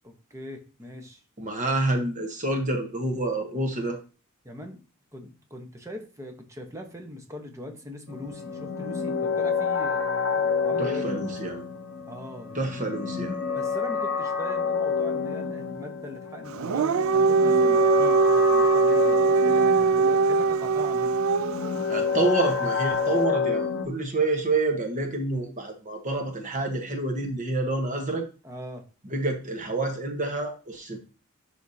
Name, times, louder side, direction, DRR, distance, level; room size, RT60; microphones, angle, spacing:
voice 1, 0.0-1.2 4.4-4.8 5.1-11.0 12.1-12.9 13.4-21.1 22.0-22.2 28.4-28.8, left 1 dB, 15° right, 3 dB, 1.1 m, -40 dB
voice 2, 1.4-4.0 10.8-11.6 12.5-13.4 21.9-28.3 29.1-31.0, right 2 dB, 35° right, 3 dB, 1.2 m, -28 dB
sound 1, 8.1-23.9, left 5 dB, 60° left, 0.8 m, -29 dB
Dog, 16.5-21.7, right 4 dB, 65° right, 0.3 m, -21 dB
11.0 x 3.7 x 2.8 m, 0.35 s
head